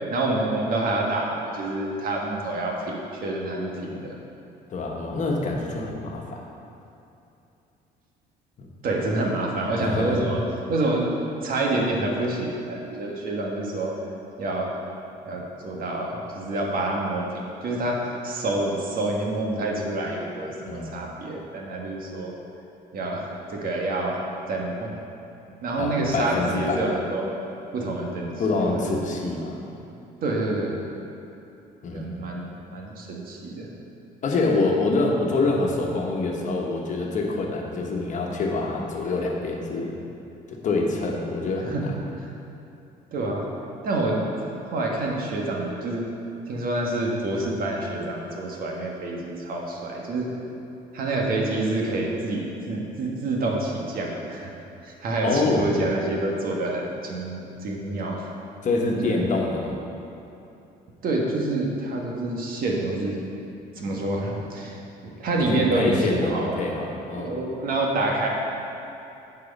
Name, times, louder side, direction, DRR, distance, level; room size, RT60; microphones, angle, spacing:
voice 1, 0.1-4.1 8.8-10.4 10.7-11.1 11.4-13.9 14.4-14.7 15.2-22.3 22.9-24.2 24.5-24.9 25.6-27.3 27.7-29.2 30.2-30.7 31.9-33.7 41.6-41.9 42.2-42.3 43.1-43.5 43.8-46.0 46.4-50.3 50.9-54.5 54.8-58.2 58.9-59.2 61.0-63.2 63.7-64.8 65.2-66.6 67.2-68.3, right 2 dB, 60° right, -1 dB, 1.5 m, -27 dB
voice 2, 4.7-6.5 8.6-8.7 9.8-10.2 20.7-20.9 25.8-26.8 28.4-29.5 31.8-32.1 34.2-39.9 40.5-41.8 55.2-55.6 58.6-59.8 65.4-67.3, left 3 dB, 45° left, -1 dB, 1.3 m, -26 dB
10.5 x 4.8 x 5.4 m, 2.8 s
cardioid pair, 110°, 17 cm